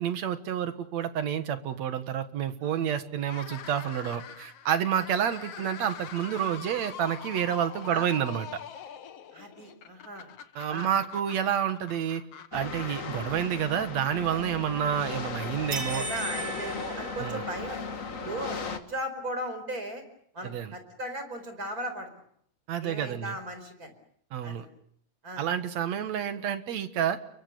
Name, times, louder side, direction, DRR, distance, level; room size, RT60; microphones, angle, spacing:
voice 1, 0.0-8.6 10.6-12.2 12.5-16.0 17.2-17.5 20.4-20.7 22.7-23.4 24.3-24.7 25.4-27.2, right 9 dB, 65° right, 9 dB, 2.7 m, -29 dB
sound 1, 3.2-14.5, left 9 dB, 60° left, 2.1 m, -44 dB
voice 2, 9.3-10.3 10.7-10.9 15.9-17.8 18.2-20.0 20.3-22.1 22.8-23.9 24.4-24.6 25.2-25.5, right 1 dB, 30° right, 8 dB, 5.0 m, -37 dB
sound 2, 12.5-18.8, left 5 dB, 35° left, 1.4 m, -37 dB
sound 3, 15.7-17.9, right 2 dB, 50° right, 3.2 m, -36 dB
29.5 x 23.5 x 6.9 m, 0.67 s
omnidirectional pair, 3.4 m